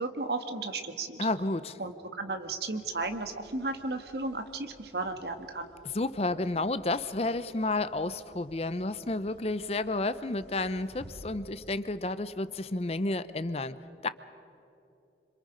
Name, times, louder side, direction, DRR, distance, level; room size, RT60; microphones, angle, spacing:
voice 1, 0.0-1.3 1.8-5.7, right 3 dB, 65° right, 7 dB, 1.6 m, -34 dB
voice 2, 1.2-1.8 5.9-13.8 14.0-14.1, left 2 dB, 35° left, 14 dB, 0.6 m, -31 dB
sound 1, 2.8-11.2, equal, 90° right, 5.3 m, -57 dB
27.0 x 26.0 x 5.1 m, 2.9 s
head